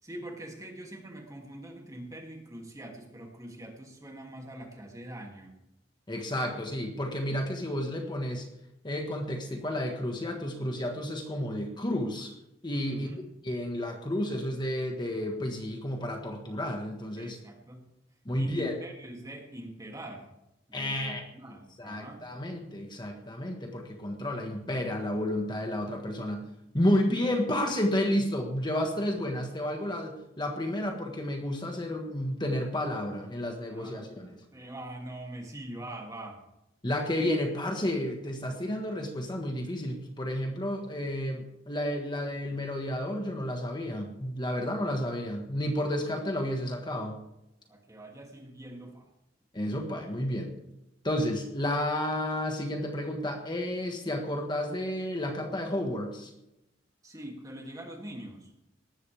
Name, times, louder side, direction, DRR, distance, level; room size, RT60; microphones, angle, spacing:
voice 1, 0.0-5.6 6.4-7.0 7.3-7.4 12.8-13.2 17.2-17.9 18.3-20.3 20.7-22.3 33.7-36.4 47.7-49.1 57.0-58.5, right 1 dB, 20° right, 1 dB, 2.8 m, -44 dB
voice 2, 6.1-8.5 8.8-12.3 12.6-17.4 18.2-18.7 20.7-21.2 21.8-26.5 26.7-34.4 36.8-47.2 49.5-50.5 51.0-56.3, left 1 dB, 25° left, 2 dB, 1.6 m, -31 dB
19.0 x 14.5 x 3.5 m, 0.89 s
head